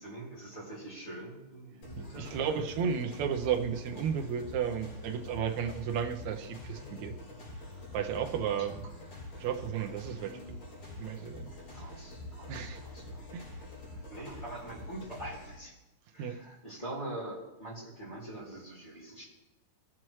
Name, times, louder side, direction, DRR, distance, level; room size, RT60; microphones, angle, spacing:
voice 1, 0.0-2.4 8.7-8.8 9.2-9.3 11.7-13.3 13.9-15.7 16.1-19.2, right 1 dB, 10° left, -7 dB, 2.7 m, -44 dB
sound 1, 1.8-15.5, left 2 dB, 50° left, 5.1 m, -45 dB
voice 2, 2.0-7.2 7.9-8.9 9.4-10.4 11.0-11.5 12.5-12.8 13.3-13.6 16.2-16.4, right 7 dB, 75° right, 3 dB, 1.7 m, -33 dB
18.0 x 7.5 x 3.1 m, 1.0 s
omnidirectional pair, 4.0 m